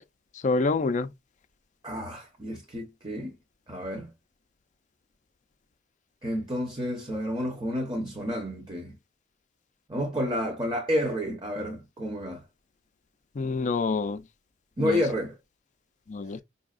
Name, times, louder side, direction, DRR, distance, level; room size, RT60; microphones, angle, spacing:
voice 1, 0.4-1.1 13.4-14.2 14.8-15.0 16.1-16.4, left 3 dB, 40° left, 0.4 m, -26 dB
voice 2, 1.8-3.4 3.7-4.1 6.2-8.9 9.9-12.4 14.8-15.3, equal, 25° right, 0.9 m, -30 dB
5.4 x 2.3 x 2.4 m
head